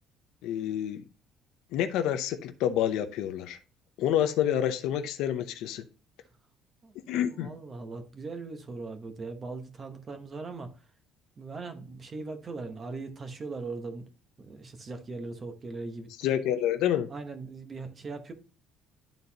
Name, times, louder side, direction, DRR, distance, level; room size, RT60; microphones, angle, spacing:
voice 1, 0.4-1.0 1.7-3.6 4.0-5.8 7.1-7.5 16.2-17.1, left 10 dB, 70° left, 0.6 m, -28 dB
voice 2, 7.3-10.7 11.4-14.1 14.4-16.1 17.1-18.3, right 3 dB, 25° right, 1.0 m, -39 dB
11.5 x 3.9 x 2.8 m
cardioid pair, 165°, 0 cm